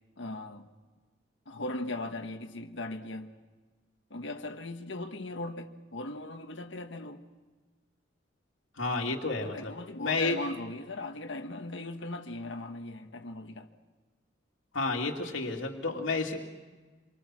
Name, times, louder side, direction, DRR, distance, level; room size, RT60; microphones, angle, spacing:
voice 1, 0.2-0.7 1.5-3.3 4.1-7.2 9.0-9.1 9.4-13.7, left 2 dB, 70° left, 1.5 m, -38 dB
voice 2, 8.8-9.7 10.0-10.4 14.7-16.4, left 3 dB, 85° left, 2.4 m, -30 dB
27.5 x 23.5 x 6.2 m
head